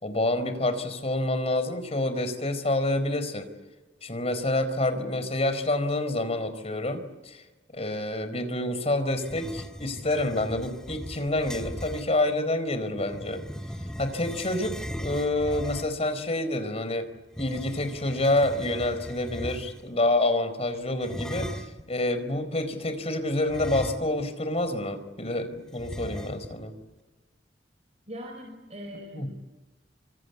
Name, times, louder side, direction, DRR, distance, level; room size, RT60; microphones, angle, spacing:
voice 1, 0.0-3.5 4.0-7.4 7.7-13.4 14.0-17.1 17.4-21.5 21.9-26.7 29.1-29.3, left 1 dB, 35° left, 10 dB, 4.5 m, -28 dB
sound 1, 9.2-12.1 12.9-16.1 17.3-19.9 21.0-21.9 23.5-24.4 24.7-24.8 25.8-26.7, equal, 5° left, 2.0 m, -38 dB
voice 2, 28.1-29.5, equal, 40° right, 2 dB, 5.3 m, -41 dB
27.5 x 26.0 x 8.2 m, 1.1 s
head